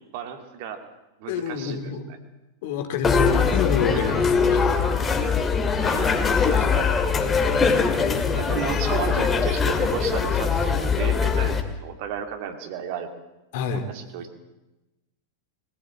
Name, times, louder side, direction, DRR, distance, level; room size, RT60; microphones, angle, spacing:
voice 1, 0.1-0.8 1.2-1.9 3.9-4.2 4.9-5.0 5.8-6.2 6.5-6.9 8.2-13.1 13.9-14.4, right 8 dB, 50° right, 6 dB, 2.5 m, -33 dB
voice 2, 1.3-2.0 2.6-4.8 6.4-6.7 13.5-13.9, left 6 dB, 50° left, 7 dB, 2.5 m, -28 dB
sound 1, 3.0-11.6, left 5 dB, 20° left, 2.3 m, -22 dB
22.0 x 16.0 x 8.5 m, 1.0 s
figure-of-eight pair, 90°, 0 cm